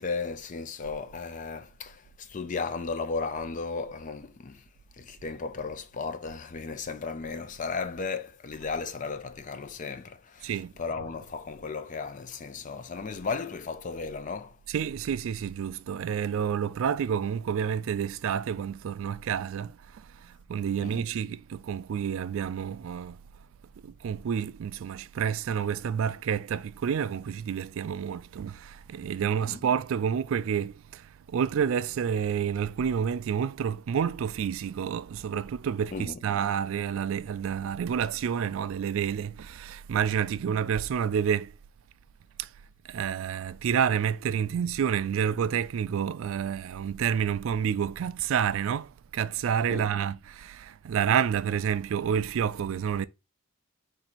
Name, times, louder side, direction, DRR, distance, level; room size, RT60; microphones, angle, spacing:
voice 1, 0.0-4.7 5.0-14.6 20.8-21.0 29.5-29.6 35.9-36.2 49.7-49.9, left 4 dB, 35° left, 0.4 m, -35 dB
voice 2, 10.4-10.7 14.7-23.2 23.8-41.5 42.4-42.5 42.9-53.1, right 8 dB, 65° right, 0.3 m, -29 dB
4.3 x 2.6 x 4.1 m
head